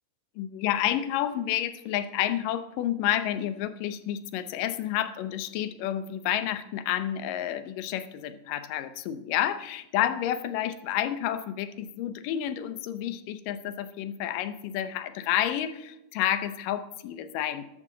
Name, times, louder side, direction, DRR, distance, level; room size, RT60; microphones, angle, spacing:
voice 1, 0.4-17.7, left 11 dB, 80° left, 12 dB, 2.4 m, -30 dB
14.0 x 11.5 x 3.9 m, 0.89 s
omnidirectional pair, 4.0 m